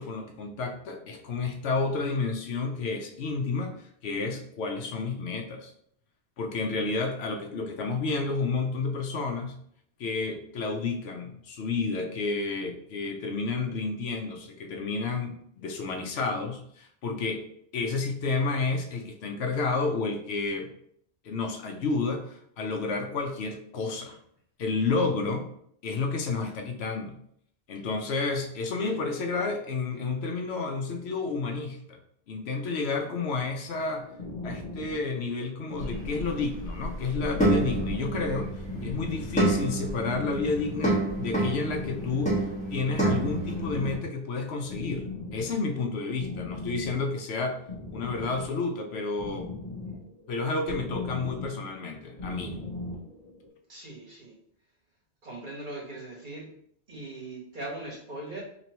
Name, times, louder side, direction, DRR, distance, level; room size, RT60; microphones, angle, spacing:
voice 1, 0.0-5.7 6.4-9.6 10.0-17.4 17.7-20.7 21.2-24.2 24.6-25.5 25.8-27.1 27.7-32.0 32.3-34.1 34.4-38.5 38.8-47.6 47.9-49.5 50.3-52.6, left 4 dB, 75° left, 4 dB, 0.8 m, -30 dB
sound 1, 33.6-53.5, left 3 dB, 40° left, 0.9 m, -40 dB
sound 2, 35.8-44.0, right 1 dB, 5° left, 1.5 m, -29 dB
voice 2, 53.7-54.3 55.2-56.5 56.9-58.4, right 2 dB, 50° right, -4 dB, 1.4 m, -40 dB
4.5 x 3.0 x 2.9 m, 0.67 s
omnidirectional pair, 1.1 m